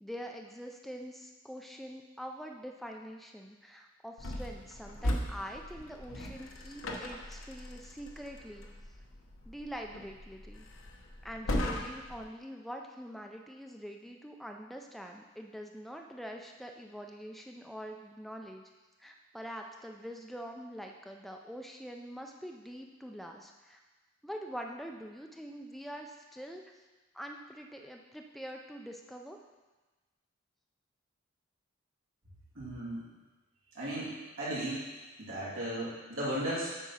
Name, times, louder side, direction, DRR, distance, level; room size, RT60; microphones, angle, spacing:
voice 1, 0.0-8.7 9.5-10.7 11.2-18.6 19.0-23.8 24.2-26.6 27.1-29.4, equal, ahead, 2 dB, 0.4 m, -44 dB
sound 1, 4.2-12.2, left 1 dB, 75° left, 0.9 m, -38 dB
voice 2, 32.5-33.0 33.7-34.8 35.2-36.7, right 1 dB, 85° right, -8 dB, 2.8 m, -35 dB
8.4 x 4.6 x 5.6 m, 1.2 s
head